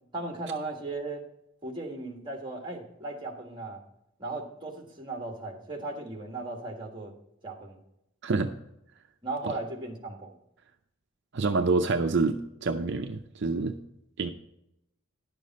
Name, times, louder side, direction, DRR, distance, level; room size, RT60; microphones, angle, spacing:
voice 1, 0.1-1.3 1.6-3.8 4.2-7.1 7.4-7.8 9.2-10.3, right 2 dB, 25° right, 2 dB, 1.6 m, -37 dB
voice 2, 11.3-13.7 14.2-14.3, right 3 dB, 60° right, 6 dB, 0.5 m, -27 dB
10.5 x 6.8 x 4.1 m, 0.82 s
head